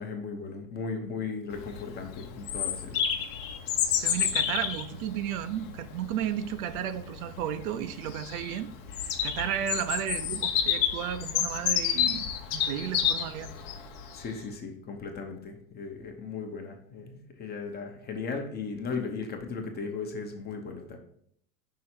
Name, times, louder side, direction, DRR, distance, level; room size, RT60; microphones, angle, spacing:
voice 1, 0.0-3.0 14.1-21.0, left 4 dB, 20° left, 4 dB, 0.8 m, -37 dB
Bird vocalization bird call bird song, 1.5-14.2, left 9 dB, 50° left, 0.9 m, -30 dB
voice 2, 4.0-8.7 9.2-13.5, right 10 dB, 70° right, 11 dB, 0.7 m, -33 dB
5.8 x 3.8 x 4.4 m, 0.66 s
supercardioid pair, 140°, 44 cm